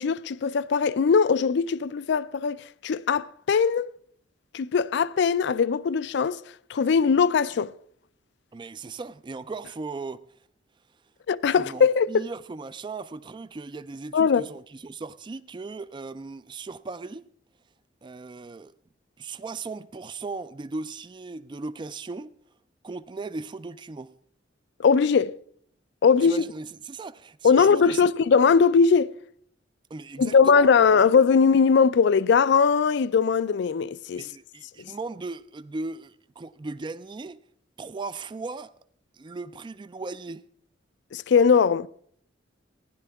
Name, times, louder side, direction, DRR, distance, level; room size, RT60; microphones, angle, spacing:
voice 1, 0.0-3.9 4.5-6.4 6.7-7.7 11.3-12.2 14.1-14.4 24.8-25.4 26.0-26.4 27.4-29.1 30.2-34.3 41.1-41.9, left 5 dB, 65° left, 0.4 m, -20 dB
voice 2, 8.5-10.3 11.5-17.3 18.0-18.7 19.2-22.3 22.8-24.1 26.2-28.1 29.9-30.7 34.1-37.4 37.8-38.7 39.1-40.5, right 3 dB, 25° right, 0.3 m, -37 dB
16.0 x 10.5 x 3.5 m
head